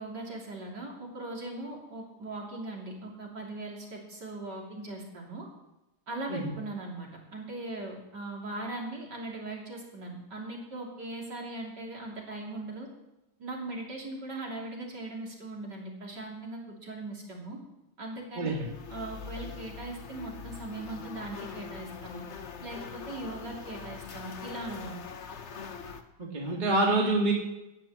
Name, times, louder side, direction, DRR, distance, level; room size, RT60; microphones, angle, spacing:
voice 1, 0.0-5.5 6.1-12.9 13.4-17.6 18.0-22.3 22.6-25.0, right 2 dB, 50° right, -1 dB, 3.7 m, -39 dB
voice 2, 18.4-18.7 26.2-27.3, right 2 dB, 20° right, -2 dB, 2.0 m, -26 dB
sound 1, 18.5-26.0, left 6 dB, 45° left, 0.9 m, -43 dB
18.0 x 6.7 x 7.4 m, 0.95 s
omnidirectional pair, 2.4 m